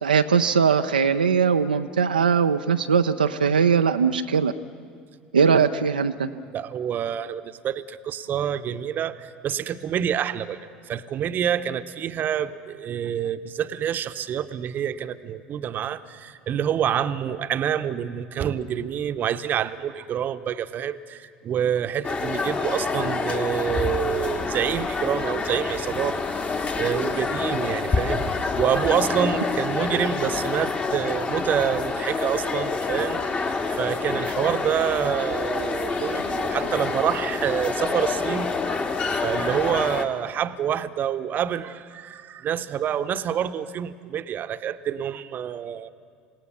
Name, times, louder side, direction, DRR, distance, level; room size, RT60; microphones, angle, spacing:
voice 1, 0.0-4.5 5.3-6.3, right 6 dB, 85° right, 7 dB, 0.5 m, -20 dB
voice 2, 6.5-10.6 10.9-26.2 26.8-28.2 28.6-38.6 38.8-45.9, right 9 dB, 40° right, 12 dB, 0.9 m, -27 dB
sound 1, 22.0-40.0, left 4 dB, 30° left, 1.8 m, -27 dB
27.5 x 18.0 x 7.0 m, 2.1 s
figure-of-eight pair, 70°, 5 cm